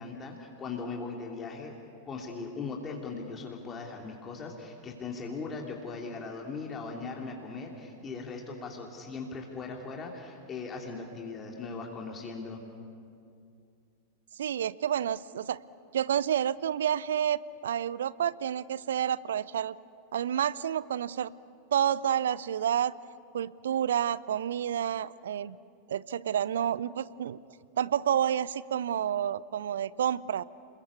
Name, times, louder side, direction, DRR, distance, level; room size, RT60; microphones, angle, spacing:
voice 1, 0.0-1.7 2.0-12.6, left 4 dB, 25° left, 0 dB, 2.9 m, -39 dB
voice 2, 14.4-15.6 15.9-19.8 20.1-21.3 21.7-23.0 23.3-25.6 25.9-27.4 27.8-30.4, right 9 dB, 65° right, 20 dB, 0.5 m, -29 dB
29.0 x 21.0 x 8.5 m, 2.5 s
figure-of-eight pair, 90°, 0 cm